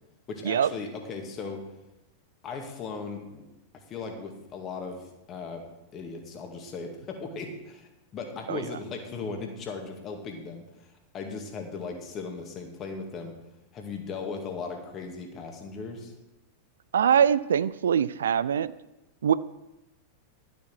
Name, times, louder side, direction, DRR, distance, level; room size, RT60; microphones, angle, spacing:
voice 1, 0.3-1.7 2.4-3.4 3.7-5.6 5.9-13.3 13.7-16.1, left 4 dB, 30° left, 3 dB, 2.1 m, -37 dB
voice 2, 16.9-18.7 19.2-19.3, right 8 dB, 65° right, 17 dB, 0.4 m, -23 dB
12.0 x 7.0 x 6.1 m, 0.96 s
figure-of-eight pair, 90°, 0 cm